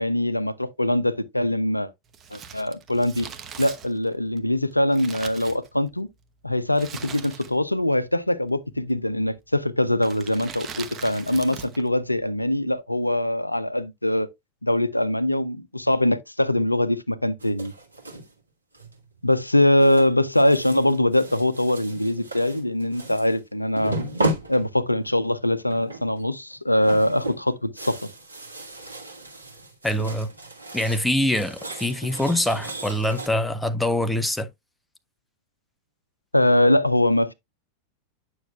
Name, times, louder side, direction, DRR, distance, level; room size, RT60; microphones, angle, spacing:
voice 1, 0.0-1.9 2.3-3.3 3.6-6.1 6.4-14.3 14.6-17.7 19.2-24.0 24.5-28.0 36.3-37.3, left 1 dB, 85° left, 0.5 m, -22 dB
Crumpling crinkling, 2.1-6.1 6.7-7.8 8.0-8.1 8.9-9.3 10.0-11.9 12.1-12.2, right 7 dB, 25° right, 1.0 m, -40 dB
sound 1, 17.4-18.3 18.7-19.2 19.8-23.4 23.8-25.2 25.7-26.2 26.5-31.1 31.3-33.3, right 2 dB, 80° right, 1.8 m, -34 dB
voice 2, 29.8-30.3 30.7-34.5, left 1 dB, 5° left, 0.7 m, -24 dB
9.2 x 6.2 x 2.3 m
figure-of-eight pair, 90°, 0 cm